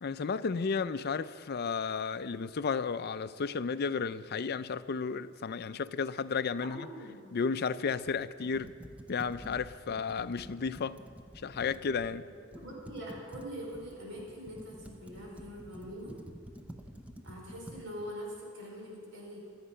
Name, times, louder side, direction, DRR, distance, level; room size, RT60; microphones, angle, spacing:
voice 1, 0.0-6.9 7.3-8.7 9.1-11.0 11.4-12.2, left 5 dB, 50° left, 0.5 m, -33 dB
voice 2, 6.6-7.3 12.5-16.2 17.2-19.4, equal, 65° right, 5.0 m, -43 dB
Computer keyboard, 8.1-12.2 12.5-17.8, equal, 5° right, 0.8 m, -49 dB
26.0 x 8.7 x 5.6 m
head